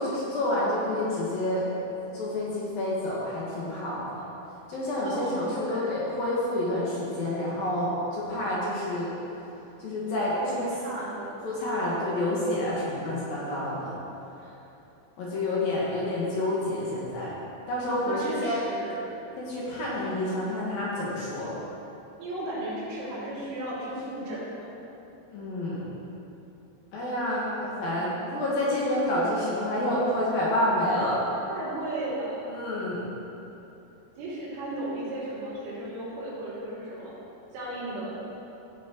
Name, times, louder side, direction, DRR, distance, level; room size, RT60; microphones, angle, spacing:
voice 1, 0.0-1.7 2.1-4.2 4.7-9.1 9.8-10.6 11.4-13.9 15.2-17.3 17.7-18.7 19.4-21.6 25.3-25.9 26.9-31.2 32.5-33.1, left 1 dB, 60° left, -6 dB, 2.8 m, -28 dB
voice 2, 5.0-6.0 10.4-11.4 14.4-14.6 18.1-19.1 22.2-24.7 31.5-32.5 34.2-37.2 37.5-38.2, right 1 dB, 85° right, -7 dB, 5.4 m, -35 dB
15.0 x 7.2 x 4.6 m, 3.0 s
omnidirectional pair, 5.5 m